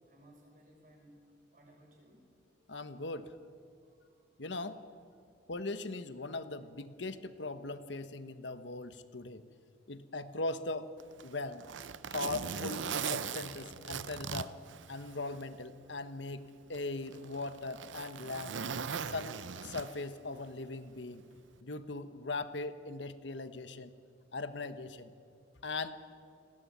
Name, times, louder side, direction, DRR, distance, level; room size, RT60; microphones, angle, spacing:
voice 1, 0.0-1.2 1.5-2.3 3.9-4.2, right 1 dB, 45° right, -1 dB, 6.5 m, -60 dB
voice 2, 2.7-3.4 4.4-4.8 5.5-9.4 9.9-10.9 11.2-11.7 12.1-14.5 14.9-18.6 19.1-19.3 19.6-21.2 21.6-23.9 24.3-25.1 25.6-26.0, left 2 dB, 75° left, 11 dB, 1.2 m, -39 dB
Zipper (clothing), 11.0-15.5 15.9-16.0 16.7-20.2 21.4-21.6, right 6 dB, 90° right, 0.7 m, -39 dB
19.5 x 17.0 x 9.4 m, 2.3 s
head